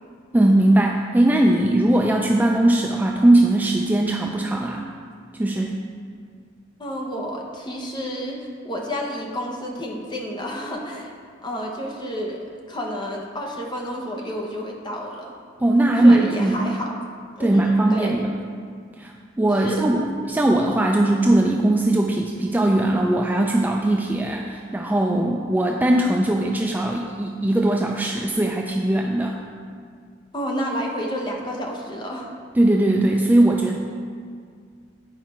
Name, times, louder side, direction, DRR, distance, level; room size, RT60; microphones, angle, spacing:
voice 1, 0.3-4.8 5.4-5.8 15.6-16.7 17.4-18.3 19.0-29.4 32.6-33.8, right 1 dB, 10° right, 0 dB, 0.3 m, -19 dB
voice 2, 6.8-11.1 11.4-12.4 12.7-15.3 16.0-16.9 17.4-18.3 19.6-19.9 30.3-32.3, equal, 25° left, 0 dB, 0.9 m, -30 dB
9.1 x 4.8 x 4.3 m, 2.1 s
head